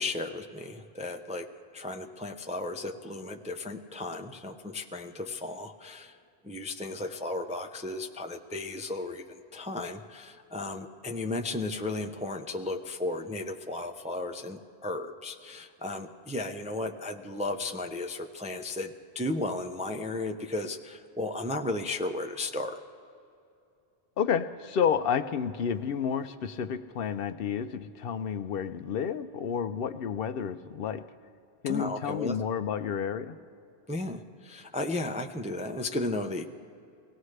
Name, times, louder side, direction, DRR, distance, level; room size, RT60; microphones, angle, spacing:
voice 1, 0.0-1.5 1.7-6.2 6.4-22.8 31.7-32.4 33.9-36.4, left 2 dB, 10° right, 5 dB, 0.3 m, -34 dB
voice 2, 24.2-31.0 31.6-33.4, left 7 dB, 65° left, 11 dB, 0.7 m, -30 dB
23.5 x 17.5 x 3.3 m, 2.5 s
omnidirectional pair, 1.1 m